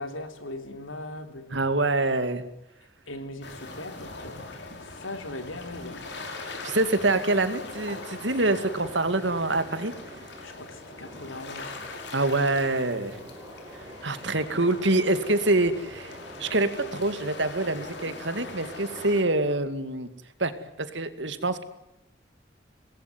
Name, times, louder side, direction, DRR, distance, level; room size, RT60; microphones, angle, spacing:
voice 1, 0.0-1.8 3.1-4.7 5.0-6.1 10.4-11.9, left 2 dB, 90° left, 7 dB, 3.6 m, -39 dB
voice 2, 1.5-2.4 6.6-9.9 12.1-13.2 14.0-16.1 16.4-20.1 20.4-21.6, right 2 dB, 70° right, 10 dB, 2.3 m, -25 dB
sound 1, 3.4-19.2, left 3 dB, 65° left, 5.3 m, -42 dB
Train, 6.0-19.6, right 1 dB, 20° right, 7.0 m, -47 dB
27.0 x 20.5 x 9.5 m, 0.85 s
head